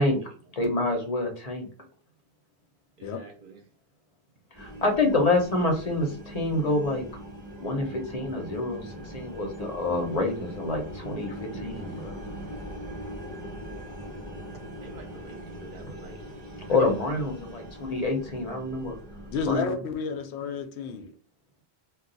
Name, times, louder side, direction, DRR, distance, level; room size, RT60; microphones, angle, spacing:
voice 1, 0.0-0.3 3.0-3.6 14.8-16.2 16.6-16.9, right 3 dB, 55° right, 0.8 m, -47 dB
voice 2, 0.5-1.7 4.5-7.0 7.6-12.2 16.7-19.0 19.5-19.8, left 2 dB, 40° left, 0.8 m, -27 dB
sound 1, 4.5-19.6, equal, 20° right, 0.8 m, -41 dB
voice 3, 19.3-21.1, left 5 dB, 90° left, 0.8 m, -30 dB
2.3 x 2.3 x 3.8 m
omnidirectional pair, 1.1 m